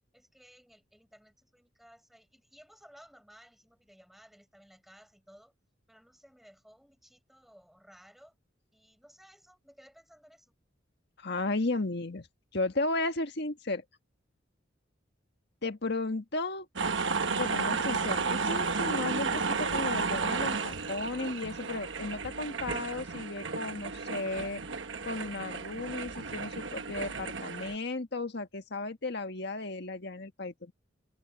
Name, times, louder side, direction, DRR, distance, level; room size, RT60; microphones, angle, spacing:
voice 1, 0.1-5.5 5.9-8.4 8.7-10.5, equal, ahead, 6.3 m, -58 dB
voice 2, 11.2-12.3 12.5-13.8 15.6-16.7 17.3-24.6 25.0-30.7, left 2 dB, 60° left, 1.6 m, -34 dB
sound 1, 16.8-27.8, right 4 dB, 70° right, 1.2 m, -33 dB
head